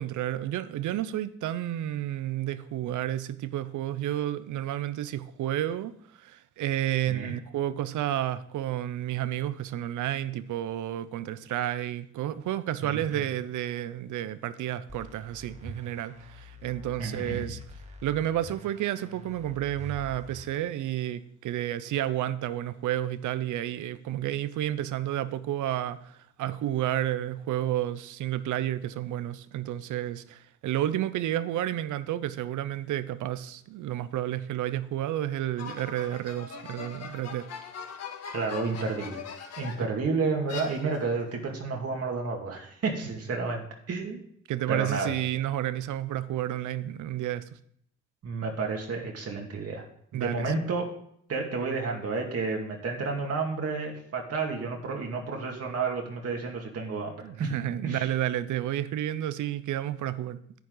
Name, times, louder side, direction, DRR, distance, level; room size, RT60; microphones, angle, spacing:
voice 1, 0.0-5.9 6.2-17.6 18.0-37.5 39.8-39.9 44.5-47.4 50.1-50.5 57.2-60.4, right 12 dB, 75° right, 0.8 m, -31 dB
voice 2, 12.8-13.2 17.0-17.4 38.3-39.2 39.6-44.2 44.7-45.1 48.2-49.8 50.1-50.9 51.3-57.5 57.8-58.1, right 4 dB, 55° right, 2.2 m, -31 dB
sound 1, 14.9-20.5, equal, 25° right, 1.7 m, -45 dB
sound 2, 35.6-40.0 40.5-41.2, left 5 dB, 55° left, 1.8 m, -41 dB
10.5 x 9.3 x 3.9 m
cardioid pair, 90°, 30 cm